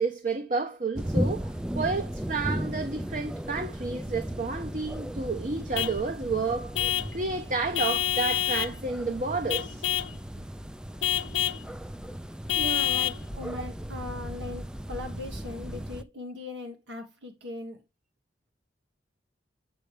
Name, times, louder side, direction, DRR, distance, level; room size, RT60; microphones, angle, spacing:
voice 1, 0.0-9.9, right 3 dB, 45° right, 0.8 m, -31 dB
sound 1, 1.0-16.0, right 1 dB, 5° right, 0.3 m, -36 dB
Vehicle horn car horn honking / Truck, 5.7-6.0 6.7-7.2 7.7-8.8 9.5-10.2 11.0-11.6 12.5-13.2, left 12 dB, 85° left, 0.5 m, -27 dB
voice 2, 12.5-17.8, left 1 dB, 80° right, 1.4 m, -39 dB
8.1 x 6.4 x 3.2 m
head